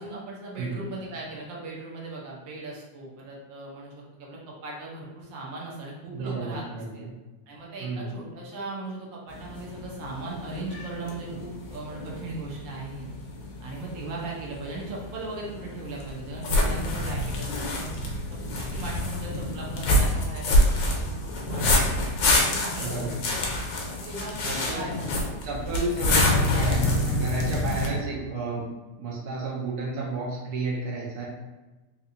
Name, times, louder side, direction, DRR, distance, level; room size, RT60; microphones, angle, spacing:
voice 1, 0.0-7.0 7.5-13.1 13.6-17.9 18.5-21.1 21.5-23.2 23.9-25.8, right 2 dB, 85° right, -3 dB, 1.5 m, -38 dB
voice 2, 6.1-7.1 7.8-8.1 22.8-23.2 24.4-24.9 25.4-28.7 29.0-31.3, right 3 dB, 65° right, -4 dB, 1.3 m, -32 dB
sound 1, 9.3-27.9, left 1 dB, 80° left, 1.4 m, -27 dB
3.8 x 2.9 x 2.5 m, 1.1 s
omnidirectional pair, 2.0 m